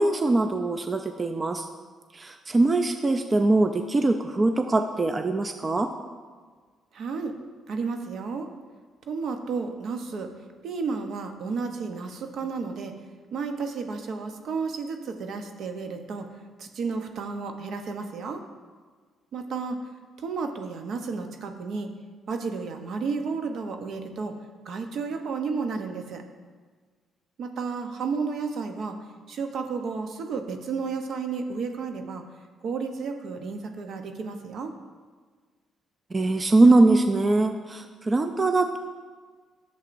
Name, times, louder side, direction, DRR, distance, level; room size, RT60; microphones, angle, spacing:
voice 1, 0.0-1.7 2.1-5.9 36.1-38.8, right 2 dB, 30° right, 7 dB, 0.4 m, -22 dB
voice 2, 6.9-7.3 7.7-8.5 9.1-10.3 10.6-12.9 13.3-16.3 16.6-18.4 19.3-19.8 20.2-21.9 22.3-24.3 24.6-26.2 27.4-29.0 29.3-32.2 32.6-34.7, right 4 dB, 65° right, 6 dB, 0.7 m, -32 dB
10.5 x 7.0 x 2.6 m, 1.5 s
cardioid pair, 90°, 0 cm